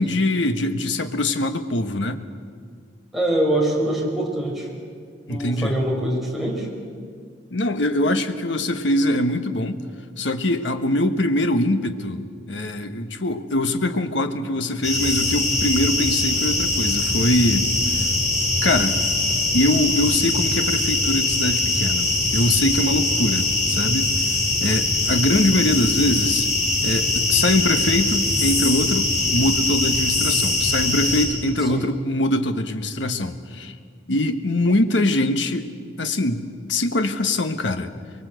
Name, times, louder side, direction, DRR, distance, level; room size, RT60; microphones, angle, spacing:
voice 1, 0.0-2.2 5.3-5.8 7.5-9.8 10.2-17.7 18.6-19.0 19.5-24.1 24.6-26.5 26.8-33.8 34.1-35.7 36.0-37.9, left 1 dB, 75° left, 9 dB, 1.4 m, -23 dB
voice 2, 3.1-4.7 5.3-6.7 31.7-31.9, right 1 dB, ahead, -3 dB, 4.6 m, -23 dB
sound 1, 14.8-31.3, left 2 dB, 40° left, 6.9 m, -22 dB
23.0 x 23.0 x 8.0 m, 2.1 s
head